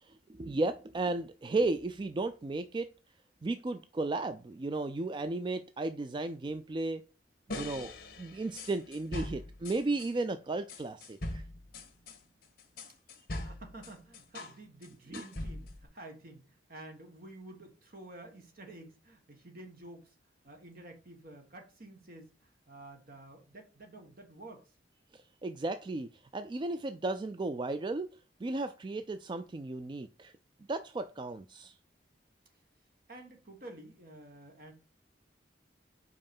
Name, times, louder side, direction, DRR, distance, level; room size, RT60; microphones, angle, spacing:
voice 1, 0.0-2.9 3.4-7.0 7.5-11.5 15.1-15.2 25.1-28.1 28.4-30.3 30.7-31.7, right 2 dB, 25° right, 0.3 m, -34 dB
sound 1, 7.5-10.1 10.7-14.6 14.8-15.8, left 1 dB, 55° left, 1.5 m, -41 dB
voice 2, 13.4-20.1 20.4-24.7 33.1-34.7, right 2 dB, 55° right, 1.6 m, -50 dB
5.4 x 4.8 x 5.3 m
head